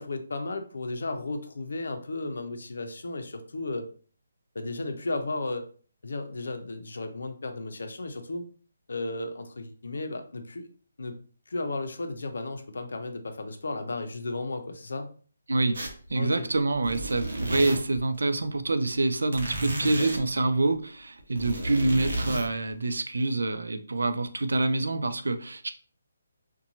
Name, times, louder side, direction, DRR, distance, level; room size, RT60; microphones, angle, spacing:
voice 1, 0.0-3.9 4.5-5.7 6.0-8.4 8.9-10.7 11.0-11.1 11.5-15.1 16.2-16.5 19.8-20.1, left 2 dB, 70° left, 7 dB, 0.5 m, -34 dB
sound 1, 15.7-16.1 16.5-18.0 19.3-20.2 21.2-22.5, right 1 dB, 65° right, 0.7 m, -32 dB
voice 2, 16.1-25.7, right 2 dB, 90° right, 10 dB, 0.3 m, -26 dB
2.6 x 2.2 x 2.9 m, 0.42 s
hypercardioid pair, 170°, 0 cm